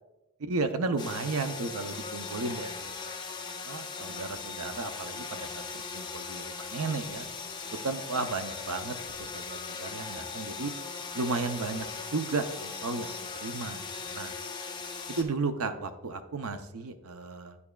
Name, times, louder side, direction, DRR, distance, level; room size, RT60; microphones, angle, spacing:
voice 1, 0.4-3.3 3.6-7.3 7.6-10.7 11.1-11.9 12.1-13.1 13.4-14.3 15.1-17.6, right 3 dB, 80° right, 9 dB, 0.6 m, -34 dB
sound 1, 1.0-15.2, left 4 dB, 20° left, 0.5 m, -39 dB
9.6 x 7.0 x 2.3 m, 1.0 s
head